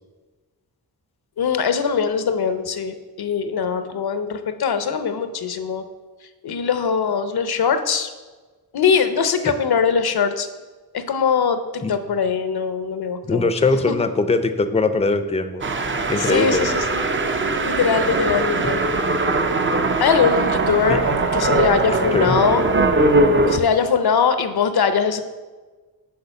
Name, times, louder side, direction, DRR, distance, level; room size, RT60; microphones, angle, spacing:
voice 1, 1.4-5.8 6.4-8.1 8.7-10.5 10.9-13.5 13.9-14.0 16.2-17.1 17.6-18.8 20.0-21.0 21.3-22.6 23.5-25.2, left 6 dB, 80° left, 9 dB, 0.7 m, -21 dB
voice 2, 13.2-15.6 16.1-16.7 18.6-18.7 20.9-21.0 22.1-22.4, left 3 dB, 15° left, 10 dB, 0.5 m, -21 dB
sound 1, 15.6-23.6, right 2 dB, 30° right, 0.5 m, -20 dB
6.6 x 5.0 x 7.0 m, 1.3 s
wide cardioid pair, 135°, 37 cm